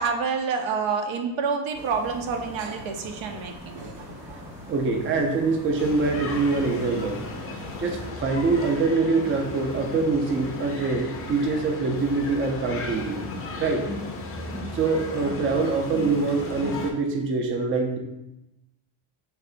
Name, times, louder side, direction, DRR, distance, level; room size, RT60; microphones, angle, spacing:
voice 1, 0.0-4.4, right 5 dB, 85° right, 5 dB, 0.6 m, -28 dB
sound 1, 1.7-8.1, left 1 dB, 5° right, 0.8 m, -42 dB
voice 2, 4.7-7.2 7.8-13.3 13.5-13.9 14.7-18.0, right 3 dB, 30° right, 3 dB, 0.4 m, -24 dB
sound 2, 5.8-16.9, left 2 dB, 30° left, 0.4 m, -35 dB
3.2 x 2.6 x 3.8 m, 0.92 s
cardioid pair, 150°, 45 cm